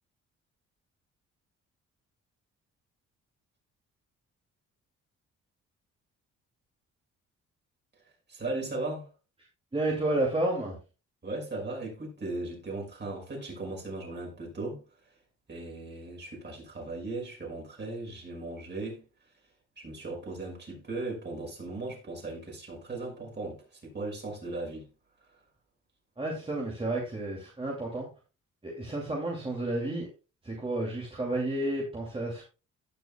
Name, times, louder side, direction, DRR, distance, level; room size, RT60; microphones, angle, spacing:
voice 1, 8.3-9.1 11.2-14.8 15.5-19.0 19.8-24.9, right 2 dB, 35° right, 5.7 m, -37 dB
voice 2, 9.7-10.8 26.2-28.1 28.6-30.1 30.4-32.4, right 1 dB, 20° right, 2.6 m, -31 dB
17.5 x 6.2 x 2.3 m
cardioid pair, 90°, 30 cm